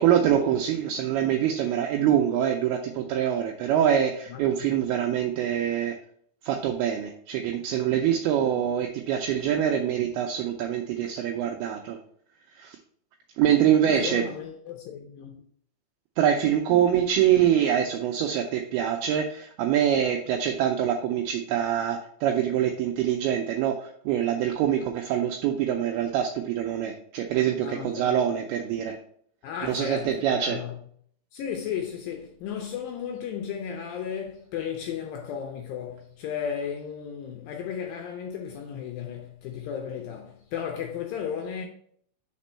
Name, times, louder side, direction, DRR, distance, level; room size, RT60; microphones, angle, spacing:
voice 1, 0.0-6.0 6.4-12.0 12.6-12.8 13.4-14.2 16.2-29.0 29.6-30.6, right 10 dB, 85° right, 2.3 m, -24 dB
voice 2, 13.9-15.4 27.6-28.2 29.4-30.8 31.3-41.7, left 8 dB, 85° left, 2.0 m, -34 dB
5.2 x 4.3 x 4.2 m
omnidirectional pair, 4.7 m